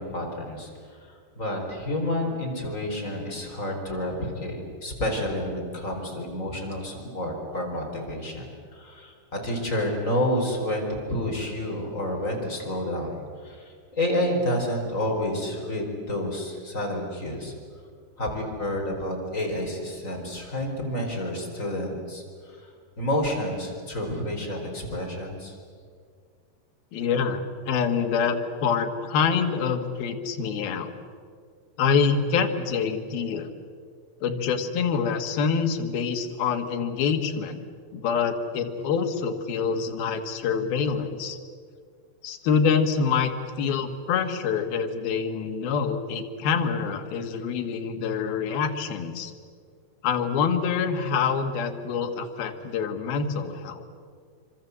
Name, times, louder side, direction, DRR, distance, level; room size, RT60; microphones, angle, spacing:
voice 1, 0.0-13.2 13.4-17.5 18.2-22.7 23.0-25.6, left 1 dB, 20° left, 0 dB, 4.4 m, -29 dB
voice 2, 26.9-30.9 31.8-33.5 34.2-37.6 37.9-41.4 42.2-43.3 43.6-49.3 50.0-53.8, left 6 dB, 65° left, 6 dB, 3.4 m, -26 dB
26.5 x 25.5 x 8.2 m, 2.1 s
omnidirectional pair, 4.8 m